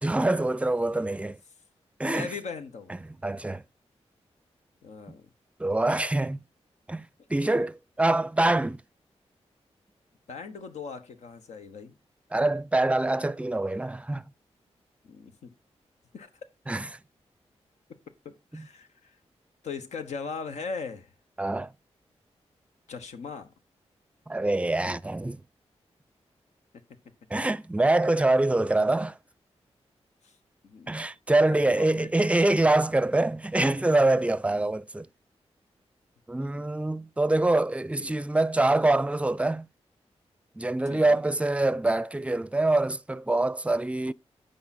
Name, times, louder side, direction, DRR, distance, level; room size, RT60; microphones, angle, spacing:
voice 1, 0.0-1.4 2.0-2.3 3.2-3.6 5.6-6.4 6.9-8.8 12.3-14.2 16.7-16.9 18.5-18.7 21.4-21.7 24.3-25.4 27.3-29.2 30.9-35.1 36.3-39.7 40.6-44.1, right 2 dB, 10° right, 0.5 m, -25 dB
voice 2, 2.0-2.9 4.8-5.2 7.6-7.7 10.3-11.9 15.0-15.5 16.1-16.3 18.2-19.2 19.6-21.1 22.9-23.5 30.2-30.3 30.6-30.9 31.6-32.6 34.5-34.7 36.4-36.6 38.0-38.2 40.8-41.2, left 5 dB, 90° left, 1.1 m, -39 dB
9.6 x 5.2 x 4.2 m
cardioid pair, 50°, 11 cm